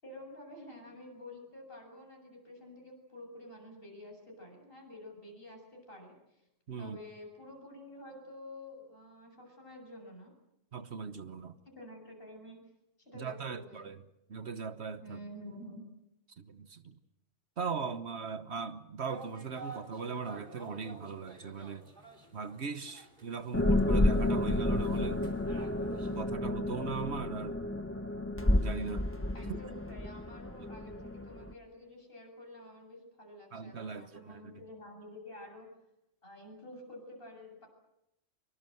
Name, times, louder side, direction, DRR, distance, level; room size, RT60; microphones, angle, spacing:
voice 1, 0.0-6.4 6.8-10.3 11.7-12.6 13.0-13.9 15.0-15.8 29.3-35.7 36.2-37.7, left 1 dB, 50° left, 8.0 m, -49 dB
voice 2, 10.7-11.6 13.1-14.0 14.3-15.2 16.4-17.0 17.6-21.9 22.3-25.2 26.1-27.6 28.6-29.1 29.5-29.6 33.5-34.5, right 5 dB, 60° right, 1.4 m, -39 dB
sound 1, 19.1-26.2, right 2 dB, 40° right, 3.5 m, -52 dB
sound 2, 23.5-31.5, left 1 dB, 10° left, 1.1 m, -31 dB
25.5 x 23.0 x 7.9 m
omnidirectional pair, 1.3 m